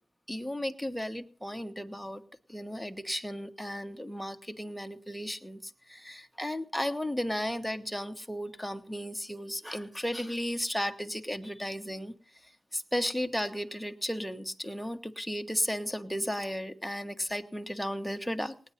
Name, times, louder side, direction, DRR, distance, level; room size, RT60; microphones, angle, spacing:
voice 1, 0.3-2.2 2.5-12.1 12.7-18.5, equal, ahead, 1.3 m, -34 dB
19.0 x 9.6 x 5.8 m
wide cardioid pair, 95°, 0 cm